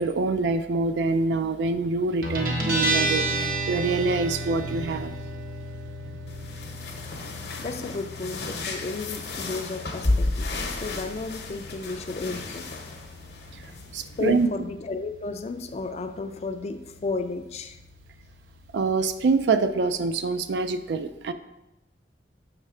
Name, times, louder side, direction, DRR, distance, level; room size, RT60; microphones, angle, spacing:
voice 1, 0.0-5.1 13.9-14.5 18.7-21.3, right 4 dB, 80° right, 10 dB, 0.4 m, -25 dB
Guitar, 2.2-19.4, right 1 dB, 50° right, 0.9 m, -34 dB
sound 1, 6.3-14.4, left 2 dB, 65° left, 0.8 m, -32 dB
voice 2, 7.6-12.7 14.2-17.8, left 3 dB, 35° left, 8 dB, 0.3 m, -33 dB
6.6 x 3.2 x 4.9 m, 0.95 s
head